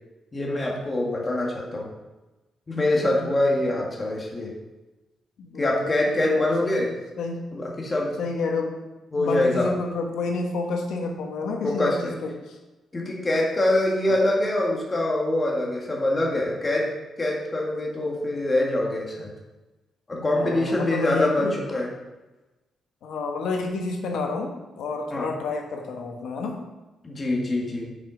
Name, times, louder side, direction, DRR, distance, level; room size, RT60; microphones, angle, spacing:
voice 1, 0.3-1.9 2.7-4.5 5.6-6.9 7.5-8.2 9.1-9.7 11.6-12.1 12.9-16.9 17.2-19.3 20.1-21.9 25.1-25.2 27.0-27.9, left 1 dB, 20° left, -2 dB, 1.5 m, -24 dB
voice 2, 5.4-6.9 7.2-7.4 8.2-8.9 9.1-12.6 20.1-21.5 23.0-26.6, left 3 dB, 90° left, 2 dB, 1.2 m, -30 dB
7.3 x 5.4 x 5.0 m, 1.1 s
wide cardioid pair, 170°, 0 cm